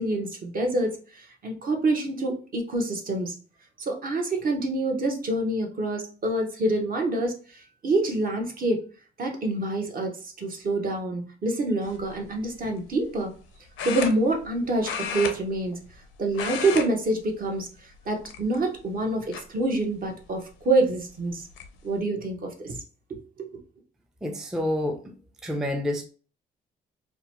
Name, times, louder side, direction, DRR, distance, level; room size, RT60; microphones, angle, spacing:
voice 1, 0.0-3.3 3.8-8.8 9.2-10.1 10.4-13.3 13.8-15.8 16.2-21.5 21.8-22.8 23.1-23.5, right 2 dB, 45° right, 0.8 m, -27 dB
sound 1, 11.8-12.1 13.8-14.6 14.8-16.0 16.3-16.9 17.2-17.4 18.2-18.8 19.3-19.4 20.9-21.0 21.3-21.7, left 7 dB, 85° left, 0.5 m, -33 dB
voice 2, 24.2-25.1 25.4-26.0, left 1 dB, 5° right, 0.3 m, -28 dB
2.8 x 2.1 x 2.8 m
cardioid pair, 90°, 20 cm